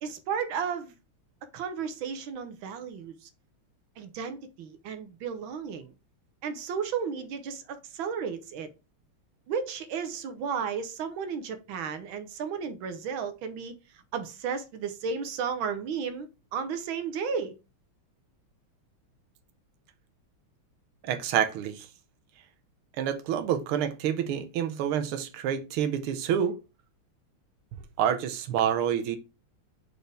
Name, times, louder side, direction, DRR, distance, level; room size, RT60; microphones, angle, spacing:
voice 1, 0.0-0.9 1.5-3.3 4.0-5.9 6.4-8.7 9.5-17.6, right 6 dB, 70° right, 1.6 m, -34 dB
voice 2, 21.0-21.9 23.0-26.6 28.0-29.2, right 9 dB, 85° right, 1.7 m, -28 dB
6.5 x 4.3 x 3.4 m
omnidirectional pair, 2.3 m